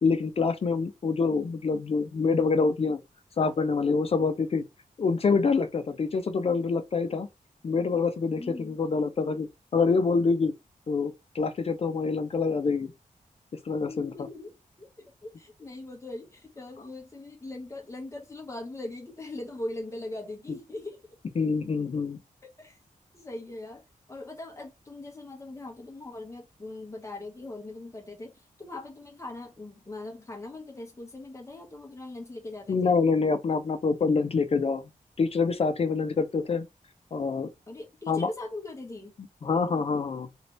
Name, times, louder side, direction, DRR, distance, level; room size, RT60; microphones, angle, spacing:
voice 1, 0.0-3.0 3.4-4.6 5.0-7.3 7.6-10.5 10.9-12.9 13.7-14.1 21.4-22.2 32.7-34.9 35.2-36.6 37.1-37.5 38.1-38.3 39.4-40.3, left 4 dB, 45° left, 0.4 m, -26 dB
voice 2, 8.3-8.8 13.8-21.0 22.6-22.8 23.1-23.8 24.1-33.0 37.7-39.1, left 2 dB, 20° left, 0.9 m, -40 dB
3.0 x 2.8 x 3.0 m
wide cardioid pair, 160°, 14 cm